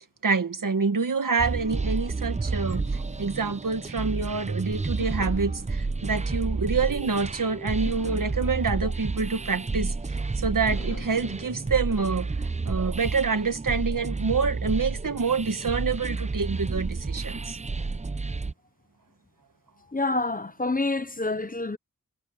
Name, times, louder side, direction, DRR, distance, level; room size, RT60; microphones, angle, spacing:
voice 1, 0.2-9.9 10.4-12.3 12.7-17.6, right 4 dB, 70° right, 1.9 m, -27 dB
sound 1, 1.4-18.5, right 3 dB, 20° right, 0.5 m, -30 dB
sound 2, 2.7-4.4 5.0-7.3 7.9-10.1 10.7-13.0, left 4 dB, 55° left, 2.9 m, -48 dB
voice 2, 19.9-21.8, left 2 dB, 25° left, 0.8 m, -27 dB
wide cardioid pair, 85°, 33 cm